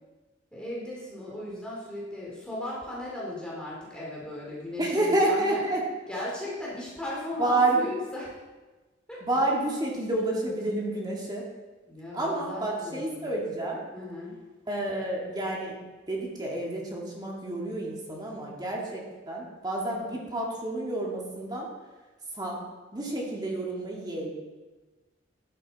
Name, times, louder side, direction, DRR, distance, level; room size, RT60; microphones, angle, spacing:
voice 1, 0.5-5.6 6.1-8.3 9.1-9.2 11.9-13.3 13.9-14.3, left 1 dB, 5° left, -6 dB, 2.5 m, -37 dB
voice 2, 4.8-5.8 7.4-7.9 9.2-11.5 12.1-13.8 14.7-15.8 16.1-21.7 22.3-22.6 22.9-24.3, right 2 dB, 20° right, -2 dB, 1.8 m, -29 dB
11.5 x 9.0 x 4.0 m, 1.2 s
head